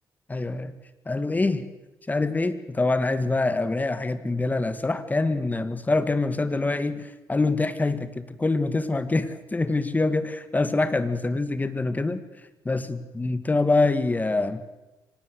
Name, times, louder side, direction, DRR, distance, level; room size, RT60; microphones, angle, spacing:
voice 1, 0.3-0.7 1.1-1.6 2.1-12.2 12.7-14.6, left 3 dB, 20° left, 12 dB, 2.0 m, -25 dB
24.5 x 18.5 x 8.0 m, 1.0 s
cardioid pair, 85°, 7 cm